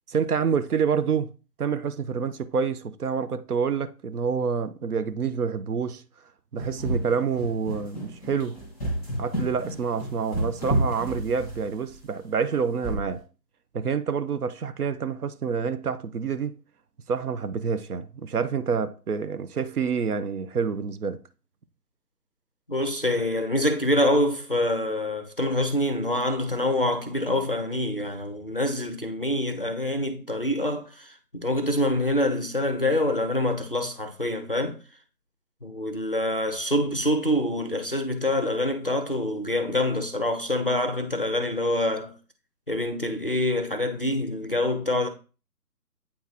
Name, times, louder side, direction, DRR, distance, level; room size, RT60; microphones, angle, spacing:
voice 1, 0.1-1.3 1.6-6.0 6.5-8.6 9.2-13.2 13.7-16.6 17.1-21.2, right 6 dB, 65° right, 0.7 m, -27 dB
sound 1, 6.6-11.9 12.8-13.2, right 1 dB, ahead, 1.0 m, -30 dB
voice 2, 22.7-34.8 35.6-42.1 42.7-45.1, left 1 dB, 35° left, 0.5 m, -26 dB
8.6 x 2.9 x 3.9 m
figure-of-eight pair, 155°, 49 cm